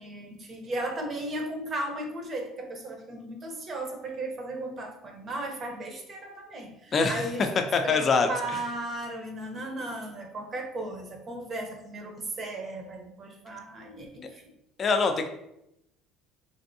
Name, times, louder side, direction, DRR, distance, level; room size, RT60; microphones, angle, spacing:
voice 1, 0.0-7.5 7.8-14.4, right 1 dB, 40° right, 3 dB, 0.7 m, -36 dB
voice 2, 6.9-7.2 7.7-8.3 14.8-15.3, left 4 dB, 40° left, 6 dB, 0.4 m, -23 dB
3.3 x 2.5 x 2.6 m, 0.83 s
supercardioid pair, 90°, 0 cm